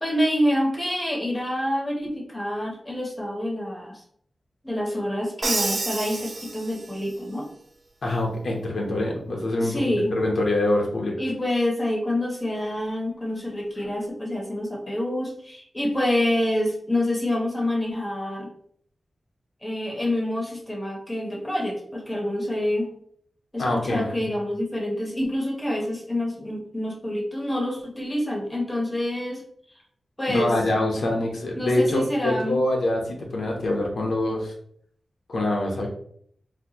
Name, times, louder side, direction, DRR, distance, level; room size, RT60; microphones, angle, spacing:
voice 1, 0.0-4.0 4.6-7.5 9.6-10.2 11.2-18.5 19.6-22.9 23.5-29.4 30.2-30.5 31.5-32.6, left 1 dB, 15° left, 0 dB, 0.7 m, -27 dB
Crash cymbal, 5.4-7.1, right 3 dB, 45° right, 0.4 m, -29 dB
voice 2, 8.0-9.8 10.1-11.1 23.6-24.3 30.3-34.5 35.3-35.9, left 1 dB, 80° left, 0 dB, 0.7 m, -25 dB
4.1 x 2.2 x 2.7 m, 0.63 s
wide cardioid pair, 135°, 0 cm